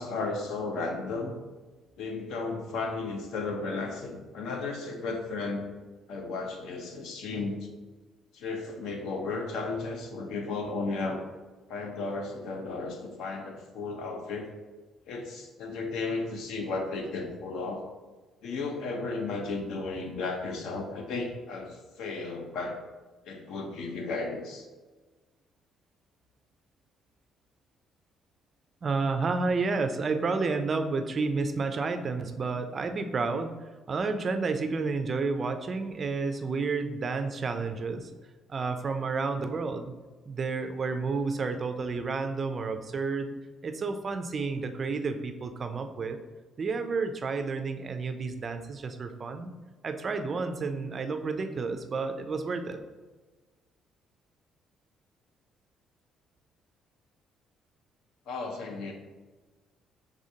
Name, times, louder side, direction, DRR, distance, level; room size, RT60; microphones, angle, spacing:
voice 1, 0.0-1.4 2.0-5.7 6.1-7.7 8.3-11.2 11.7-14.5 15.1-17.8 18.4-22.8 23.3-24.7 58.3-58.9, left 3 dB, 75° left, 3 dB, 0.7 m, -34 dB
voice 2, 28.8-33.5 33.9-38.1 38.5-39.9 40.3-43.3 43.6-46.2 46.6-49.5 49.8-52.8, right 4 dB, 30° right, 7 dB, 0.3 m, -30 dB
5.0 x 3.5 x 2.7 m, 1.3 s
cardioid pair, 165°, 0 cm